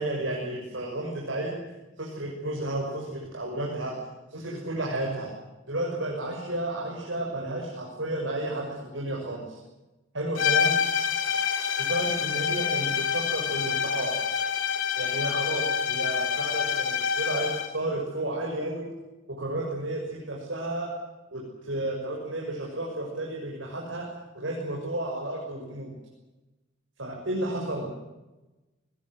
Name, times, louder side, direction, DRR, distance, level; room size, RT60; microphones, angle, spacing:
voice 1, 0.0-1.6 2.0-3.9 4.3-5.3 5.7-9.6 10.1-10.8 11.8-14.1 14.9-18.9 19.3-20.9 21.3-24.1 24.3-25.9 27.0-27.9, right 1 dB, 70° right, -2 dB, 6.6 m, -32 dB
sound 1, 10.4-17.8, left 7 dB, 75° left, 3.4 m, -27 dB
23.5 x 20.5 x 8.2 m, 1.1 s
head